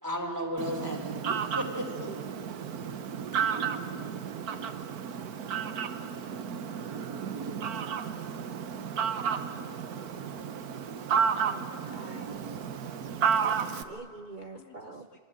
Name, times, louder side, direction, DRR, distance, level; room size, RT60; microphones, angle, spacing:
voice 1, 0.0-1.0 1.3-2.1 3.3-3.8 9.5-9.6 10.0-10.2, equal, 10° right, 1 dB, 3.6 m, -35 dB
Fowl, 0.6-13.8, right 7 dB, 65° right, 1.6 m, -32 dB
voice 2, 4.2-6.0 10.4-11.4 12.1-13.9 14.4-15.2, left 3 dB, 65° left, 3 dB, 3.6 m, -61 dB
voice 3, 11.5-12.4 13.4-15.1, right 3 dB, 45° right, 9 dB, 0.6 m, -45 dB
26.5 x 24.5 x 9.0 m, 2.2 s
omnidirectional pair, 1.8 m